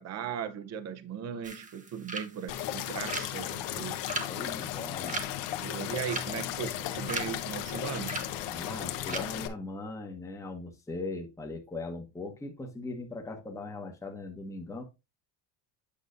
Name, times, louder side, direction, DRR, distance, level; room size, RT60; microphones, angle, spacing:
voice 1, 0.0-4.1 5.6-8.3, right 8 dB, 35° right, 0.8 m, -38 dB
sound 1, 1.4-9.2, right 3 dB, 15° right, 1.1 m, -41 dB
sound 2, 2.5-9.5, left 12 dB, 70° left, 1.2 m, -35 dB
voice 2, 4.3-5.2 8.5-14.8, left 3 dB, 5° left, 1.1 m, -39 dB
8.6 x 5.5 x 2.6 m
cardioid pair, 135°, 46 cm